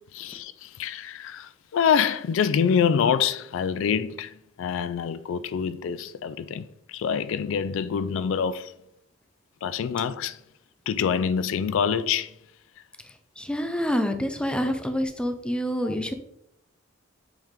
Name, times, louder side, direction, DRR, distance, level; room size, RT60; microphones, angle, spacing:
voice 1, 0.1-4.3 4.6-8.7 9.6-10.4 10.9-12.3 14.6-14.7 15.9-16.0, left 7 dB, 70° left, 0.3 m, -26 dB
voice 2, 13.0-16.1, equal, 5° left, 0.6 m, -27 dB
7.9 x 3.5 x 3.7 m
head